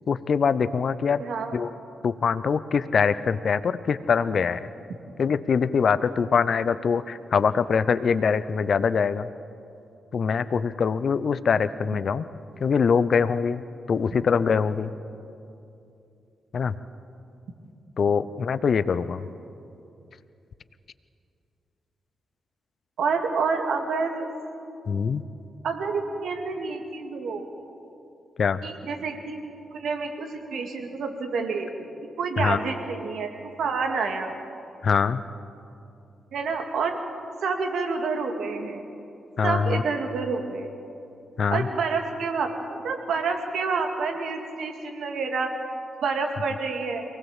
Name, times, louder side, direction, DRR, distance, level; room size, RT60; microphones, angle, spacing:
voice 1, 0.1-1.2 1.5-1.7 2.0-4.7 5.2-9.3 10.1-12.2 12.6-13.6 13.9-14.9 16.5-16.7 18.0-19.2 24.9-25.2 28.4-28.6 32.4-32.6 34.8-35.2 39.4-39.8 41.4-41.7, left 6 dB, 60° left, 14 dB, 0.7 m, -23 dB
voice 2, 1.2-1.6 23.0-24.3 25.6-27.5 28.6-29.4 29.7-31.9 32.2-34.3 36.3-37.0 37.4-38.8 39.4-40.7 41.5-42.6 42.8-45.6 46.0-47.0, right 4 dB, 70° right, 4 dB, 2.2 m, -28 dB
23.5 x 18.0 x 7.3 m, 2.7 s
hypercardioid pair, 40°, 0 cm